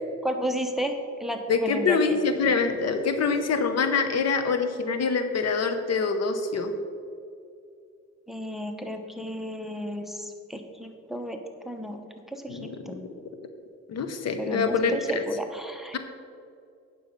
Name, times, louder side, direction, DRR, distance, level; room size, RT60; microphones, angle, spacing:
voice 1, 0.2-2.2 8.3-12.0 12.3-13.0 14.4-16.0, equal, ahead, 5 dB, 0.9 m, -33 dB
voice 2, 1.5-6.7 12.5-13.0 13.9-15.2, left 4 dB, 60° left, 8 dB, 0.9 m, -25 dB
9.2 x 6.7 x 5.3 m, 2.4 s
cardioid pair, 90°, 30 cm